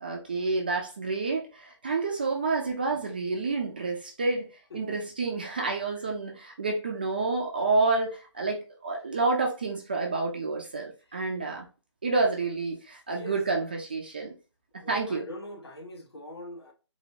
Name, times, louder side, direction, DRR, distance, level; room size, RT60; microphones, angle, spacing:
voice 1, 0.0-11.7 12.0-14.4 14.7-15.3, right 3 dB, 20° right, 0.4 m, -29 dB
voice 2, 14.8-16.7, left 1 dB, 55° left, 1.2 m, -43 dB
4.0 x 2.7 x 2.6 m
figure-of-eight pair, 150°, 16 cm